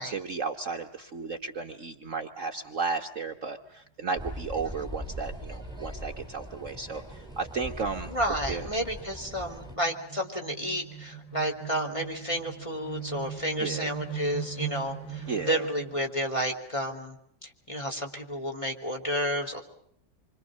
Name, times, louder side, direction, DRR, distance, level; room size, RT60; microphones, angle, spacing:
voice 1, 0.0-8.1 8.5-8.6 13.6-13.9 15.3-15.6, right 4 dB, 45° right, 4 dB, 1.6 m, -34 dB
sound 1, 4.1-9.8, equal, ahead, 5.8 m, -40 dB
sound 2, 6.4-16.1, right 8 dB, 90° left, 3.9 m, -41 dB
voice 2, 8.1-17.2 17.4-19.6, equal, 15° left, 2 dB, 4.0 m, -31 dB
28.0 x 25.0 x 6.5 m, 0.68 s
omnidirectional pair, 1.9 m